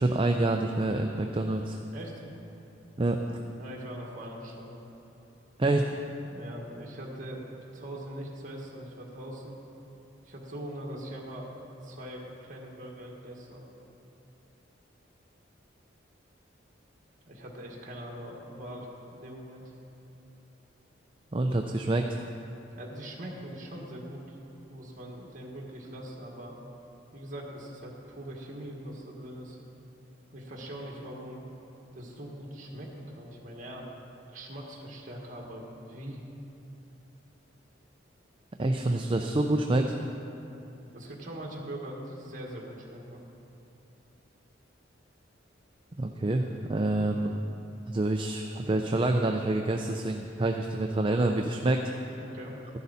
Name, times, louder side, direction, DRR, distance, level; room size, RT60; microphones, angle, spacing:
voice 1, 0.0-1.8 3.0-3.2 5.6-5.9 21.3-22.2 38.6-40.0 46.0-47.3 47.9-52.2, right 2 dB, 25° right, 3 dB, 0.5 m, -27 dB
voice 2, 1.9-2.2 3.6-4.8 6.2-7.5 7.7-9.6 10.2-11.6 11.8-13.6 17.3-19.7 22.7-24.4 24.7-26.6 27.1-29.6 30.3-31.5 31.9-33.9 34.3-36.2 40.9-43.2 47.0-47.1 52.1-52.6, right 1 dB, 45° right, -1 dB, 1.7 m, -42 dB
14.0 x 11.0 x 4.1 m, 2.9 s
head